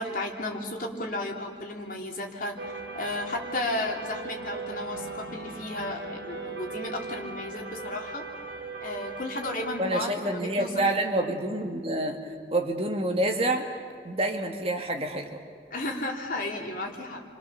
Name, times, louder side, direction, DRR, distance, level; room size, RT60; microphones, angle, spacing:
voice 1, 0.0-2.6 2.9-8.2 8.8-11.0 15.7-17.2, left 1 dB, 50° left, 0 dB, 3.3 m, -33 dB
sound 1, 2.6-11.2, right 4 dB, 75° right, 3.3 m, -40 dB
voice 2, 9.8-13.7 14.0-15.4, right 1 dB, 35° right, 3 dB, 2.1 m, -28 dB
29.5 x 25.5 x 7.0 m, 2.1 s
head